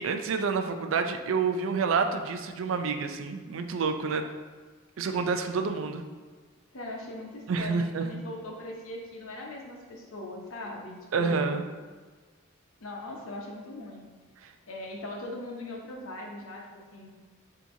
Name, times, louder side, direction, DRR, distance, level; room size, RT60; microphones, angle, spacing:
voice 1, 0.0-4.2 5.0-6.0 7.5-8.2 11.1-11.6 14.4-14.5, right 5 dB, 70° right, 6 dB, 0.4 m, -28 dB
voice 2, 6.7-11.5 12.8-14.1 14.7-17.1, left 1 dB, 80° left, 0 dB, 0.8 m, -40 dB
6.9 x 2.9 x 2.7 m, 1.4 s
head